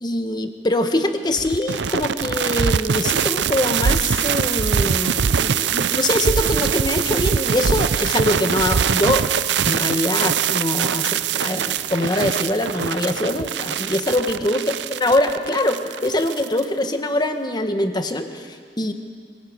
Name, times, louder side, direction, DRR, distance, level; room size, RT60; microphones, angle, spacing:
voice 1, 0.0-9.3 9.6-18.9, left 1 dB, 25° left, 7 dB, 1.4 m, -23 dB
sound 1, 1.4-16.6, right 7 dB, 75° right, 0.6 m, -22 dB
24.5 x 17.0 x 8.8 m, 2.1 s
head